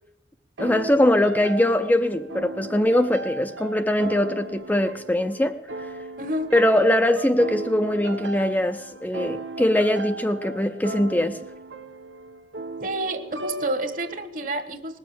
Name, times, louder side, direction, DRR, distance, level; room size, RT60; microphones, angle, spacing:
voice 1, 0.6-5.5 6.5-11.4, left 1 dB, 10° left, 0.5 m, -21 dB
sound 1, 0.6-14.3, right 2 dB, 90° right, 0.9 m, -36 dB
voice 2, 6.2-6.5 12.8-15.0, right 1 dB, 50° right, 1.3 m, -29 dB
19.5 x 7.2 x 7.5 m
head